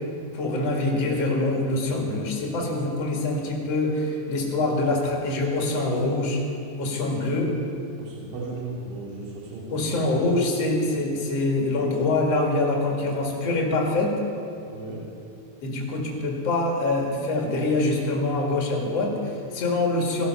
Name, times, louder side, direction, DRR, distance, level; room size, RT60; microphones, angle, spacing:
voice 1, 0.3-6.4 6.8-7.6 9.7-14.2 15.6-20.3, left 2 dB, 45° left, 0 dB, 2.4 m, -25 dB
voice 2, 8.0-9.9 14.7-15.0, right 3 dB, 60° right, -5 dB, 4.2 m, -36 dB
16.5 x 12.5 x 5.6 m, 2.6 s
omnidirectional pair, 4.8 m